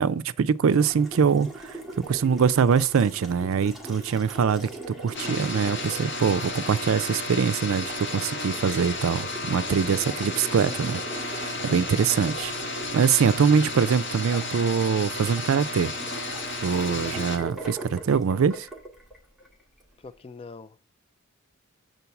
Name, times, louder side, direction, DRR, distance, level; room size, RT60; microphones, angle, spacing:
voice 1, 0.0-1.8 2.1-4.7 5.0-15.9 16.6-18.7, right 6 dB, 65° right, 0.4 m, -23 dB
Water tap faucet, 0.7-19.9, right 2 dB, ahead, 1.8 m, -42 dB
sound 1, 5.1-17.4, left 2 dB, 55° left, 1.5 m, -33 dB
voice 2, 20.0-20.8, left 4 dB, 25° left, 0.4 m, -43 dB
8.3 x 3.8 x 5.8 m
head